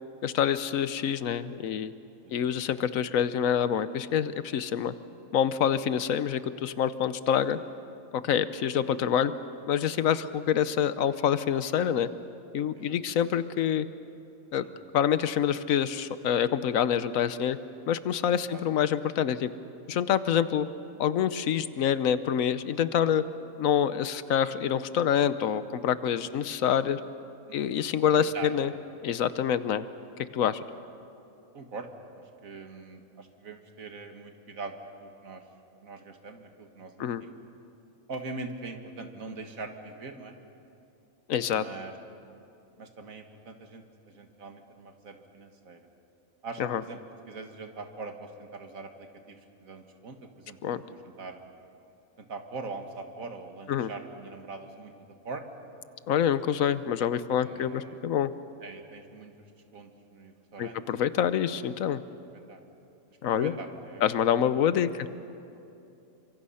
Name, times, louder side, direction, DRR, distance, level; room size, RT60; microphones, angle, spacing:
voice 1, 0.2-1.9 2.3-4.9 5.3-7.6 8.1-9.3 9.7-12.1 12.5-13.9 14.5-14.6 14.9-17.6 17.9-19.5 19.9-20.7 21.0-23.2 23.6-27.0 27.5-28.7 29.0-29.9 30.3-30.6 37.0-37.2 41.3-41.6 46.6-46.8 50.6-50.8 53.7-53.9 56.1-58.3 60.6-62.0 63.2-63.5 64.0-65.1, left 9 dB, 80° left, 13 dB, 1.2 m, -26 dB
voice 2, 27.5-27.8 28.2-28.5 30.7-30.8 31.5-31.9 32.4-34.8 35.0-35.4 35.8-37.3 38.1-40.4 41.5-41.9 42.8-45.8 46.4-47.0 47.3-51.4 52.2-54.9 55.2-55.4 57.4-58.0 58.6-59.5 59.7-60.8 62.5-62.6 63.3-64.3, right 3 dB, 85° right, 5 dB, 2.1 m, -42 dB
29.5 x 25.0 x 5.7 m, 2.7 s
omnidirectional pair, 1.4 m